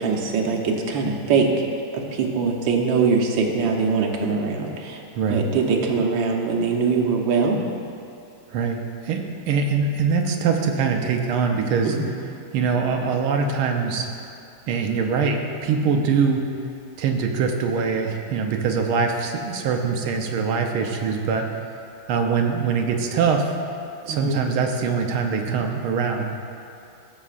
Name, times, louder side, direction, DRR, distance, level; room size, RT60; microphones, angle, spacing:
voice 1, 0.0-1.7 1.9-5.0 5.3-7.6 11.8-12.1 24.1-24.4, right 5 dB, 70° right, 1 dB, 1.6 m, -22 dB
voice 2, 8.5-12.0 12.5-14.1 14.7-16.5 17.0-21.5 22.1-23.5 24.0-26.3, right 5 dB, 90° right, 3 dB, 1.7 m, -23 dB
15.5 x 7.4 x 2.5 m, 2.7 s
omnidirectional pair, 2.3 m